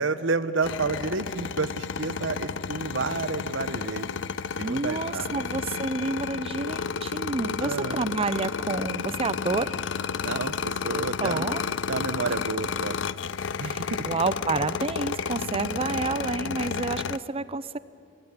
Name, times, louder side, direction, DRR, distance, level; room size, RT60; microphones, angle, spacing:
voice 1, 0.0-4.3 4.6-5.5 7.6-8.1 10.2-11.5 11.9-13.0 13.6-14.1, right 4 dB, 85° right, 13 dB, 0.9 m, -30 dB
sound 1, 0.6-17.2, left 6 dB, 75° left, 0.5 m, -31 dB
voice 2, 4.6-9.7 11.2-11.6 12.2-12.4 13.6-17.8, right 3 dB, 30° right, 15 dB, 0.6 m, -29 dB
22.0 x 16.0 x 9.7 m, 2.4 s
head